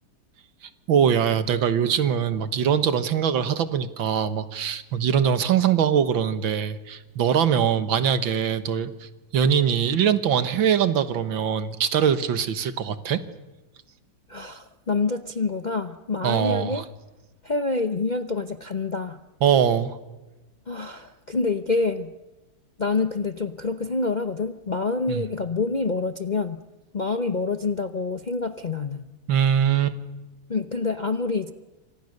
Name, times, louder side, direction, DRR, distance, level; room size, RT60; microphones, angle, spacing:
voice 1, 0.6-13.2 16.2-16.8 19.4-20.0 25.1-25.2 29.3-30.0, right 8 dB, 90° right, 11 dB, 2.1 m, -22 dB
voice 2, 14.3-16.8 17.4-19.2 20.7-22.1 22.8-26.6 26.9-29.0 30.5-31.5, left 3 dB, 45° left, 8 dB, 0.6 m, -27 dB
28.5 x 26.0 x 6.6 m, 1.1 s
omnidirectional pair, 2.1 m